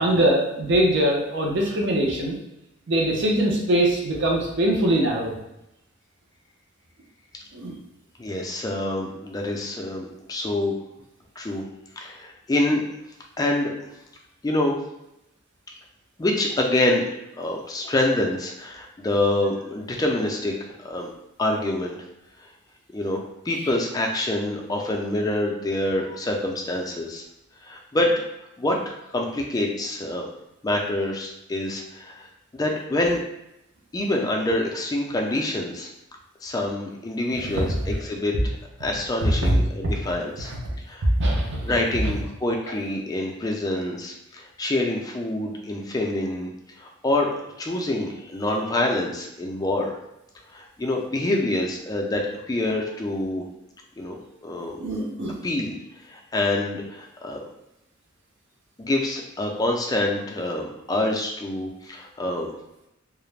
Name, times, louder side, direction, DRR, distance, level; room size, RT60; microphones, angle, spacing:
voice 1, 0.0-2.4 2.9-5.3 7.5-7.8 37.4-38.0 39.2-39.6 39.8-39.9 40.4-40.6 41.0-41.7 42.0-42.1 54.6-55.4, right 1 dB, 60° right, -1 dB, 0.6 m, -22 dB
voice 2, 8.2-10.8 11.4-11.6 12.0-12.8 13.4-13.7 14.4-14.7 16.2-17.0 17.4-21.1 21.4-22.0 22.9-23.2 23.5-27.2 27.6-28.1 28.6-28.8 29.1-30.3 30.6-33.2 33.9-35.9 36.4-38.3 38.8-40.5 40.9-41.1 41.6-46.5 46.8-49.9 50.5-52.2 52.5-53.4 54.0-54.8 55.4-55.7 56.1-57.4 58.8-62.5, left 1 dB, 20° left, 0 dB, 0.3 m, -26 dB
2.3 x 2.0 x 3.2 m, 0.88 s
head